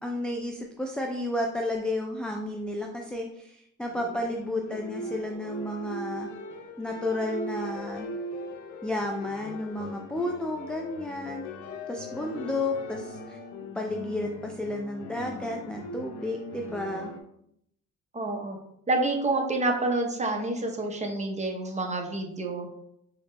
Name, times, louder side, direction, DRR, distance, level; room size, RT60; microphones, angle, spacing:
voice 1, 0.0-6.3 6.8-8.1 8.8-11.5 11.9-13.4 13.8-17.1, left 1 dB, 5° left, 1 dB, 0.3 m, -32 dB
sound 1, 3.9-17.2, left 1 dB, 75° left, 0.6 m, -40 dB
voice 2, 18.1-18.6 18.9-22.7, right 2 dB, 25° right, 2 dB, 0.7 m, -28 dB
4.9 x 2.9 x 2.2 m, 0.75 s
cardioid pair, 90°, 30 cm